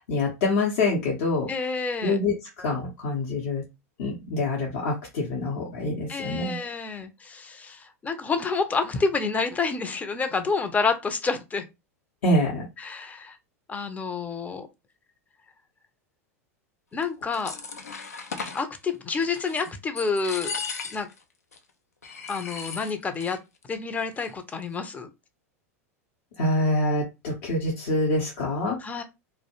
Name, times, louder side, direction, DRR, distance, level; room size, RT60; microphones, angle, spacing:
voice 1, 0.0-1.5 2.0-3.6 4.0-6.6 12.2-12.7 26.4-28.8, left 2 dB, 65° left, 0.8 m, -26 dB
voice 2, 1.5-2.2 6.1-11.7 12.8-13.4 13.7-14.7 16.9-17.5 18.5-20.5 20.9-21.1 22.3-23.4 23.7-25.1 28.8-29.0, left 4 dB, 20° left, 0.5 m, -28 dB
sound 1, 17.0-18.6 19.2-19.7 20.0-21.2 21.5-21.6 22.0-23.4 23.6-23.7 24.0-24.5, left 5 dB, 85° left, 0.4 m, -36 dB
2.3 x 2.0 x 2.9 m
hypercardioid pair, 90°, 8 cm